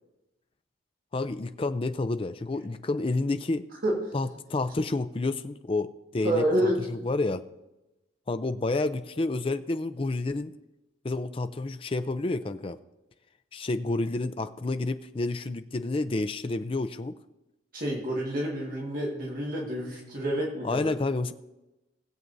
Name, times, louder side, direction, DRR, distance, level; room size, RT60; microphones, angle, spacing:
voice 1, 1.1-3.6 4.1-7.4 8.3-10.5 11.0-12.8 13.5-17.2 20.6-21.3, left 2 dB, 25° left, 10 dB, 0.4 m, -29 dB
voice 2, 6.2-6.8 17.7-20.9, right 1 dB, 45° right, -3 dB, 1.7 m, -28 dB
19.5 x 7.6 x 2.6 m, 0.98 s
head